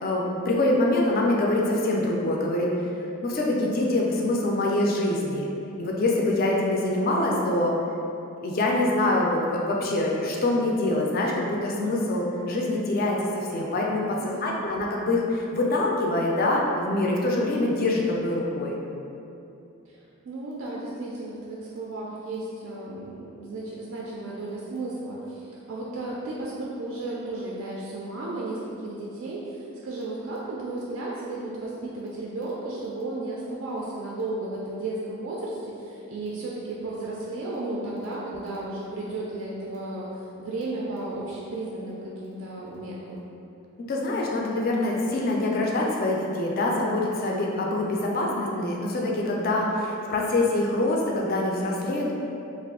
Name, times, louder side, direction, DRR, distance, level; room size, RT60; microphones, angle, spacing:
voice 1, 0.0-2.7 3.2-5.5 5.8-7.7 8.4-18.8 43.8-52.1, left 2 dB, 40° left, -2 dB, 0.3 m, -25 dB
voice 2, 14.2-14.8 19.9-43.3, right 2 dB, 60° right, -5 dB, 0.3 m, -34 dB
2.5 x 2.3 x 3.5 m, 2.8 s
head